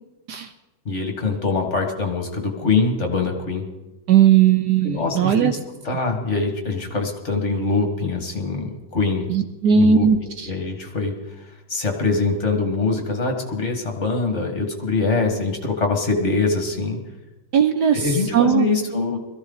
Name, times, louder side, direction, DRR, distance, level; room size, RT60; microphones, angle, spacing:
voice 1, 0.9-3.6 4.8-5.6 5.8-9.3 9.7-17.0 17.9-19.2, left 4 dB, 35° left, 3 dB, 2.2 m, -23 dB
voice 2, 4.1-5.5 9.3-10.5 17.5-18.0 18.3-18.7, right 8 dB, 65° right, 8 dB, 1.3 m, -17 dB
21.5 x 14.5 x 4.0 m, 1.1 s
omnidirectional pair, 2.2 m